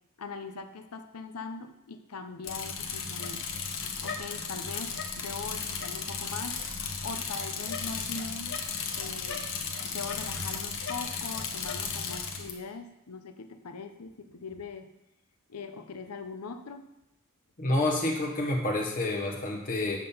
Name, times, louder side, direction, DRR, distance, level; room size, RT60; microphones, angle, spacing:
voice 1, 0.2-3.4 4.0-8.6 9.0-9.5 9.8-14.9 15.5-16.8, left 4 dB, 90° left, 8 dB, 0.7 m, -41 dB
Bicycle, 2.4-12.5, left 5 dB, 60° left, 1.0 m, -35 dB
voice 2, 17.6-20.0, left 2 dB, 40° left, 0 dB, 1.1 m, -28 dB
7.5 x 5.6 x 5.4 m, 0.89 s
head